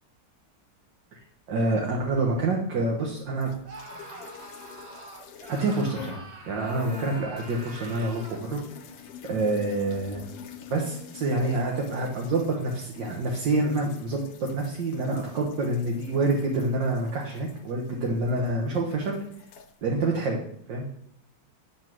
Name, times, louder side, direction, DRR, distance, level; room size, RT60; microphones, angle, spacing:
voice 1, 1.5-3.5 5.5-8.6 9.2-10.2 10.7-14.2 14.5-19.2 19.8-20.4 20.7-20.8, right 2 dB, 80° right, -1 dB, 1.7 m, -27 dB
sound 1, 3.4-6.3 6.6-18.5 18.8-19.7, left 6 dB, 90° left, 1.4 m, -46 dB
Screaming, 3.6-8.5, right 2 dB, 45° right, 1.1 m, -45 dB
7.7 x 4.0 x 6.0 m, 0.68 s
omnidirectional pair, 2.0 m